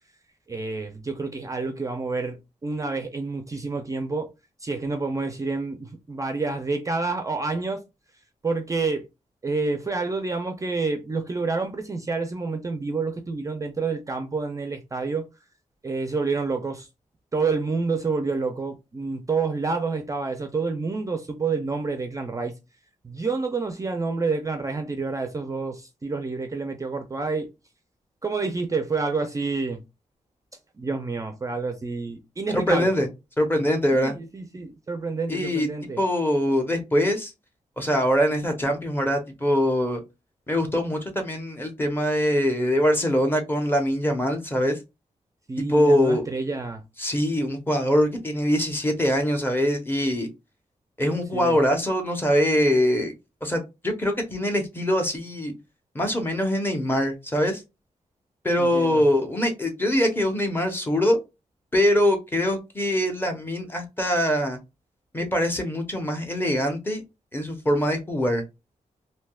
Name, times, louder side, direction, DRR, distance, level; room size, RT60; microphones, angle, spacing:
voice 1, 0.5-4.3 4.6-7.8 8.4-9.1 9.4-15.3 15.8-16.9 17.3-22.5 23.0-27.5 28.2-29.8 30.8-32.9 33.9-36.0 45.5-46.8 51.3-51.6 58.6-59.1, right 4 dB, 25° right, 0.4 m, -28 dB
voice 2, 32.5-33.1 33.4-34.1 35.3-35.7 36.0-37.3 37.8-40.0 40.5-44.8 45.7-46.2 47.0-50.3 51.0-53.1 53.4-55.5 55.9-57.6 58.4-61.2 61.7-64.6 65.1-67.0 67.3-68.4, equal, 15° left, 0.7 m, -23 dB
3.3 x 2.7 x 2.2 m
wide cardioid pair, 145°, 14 cm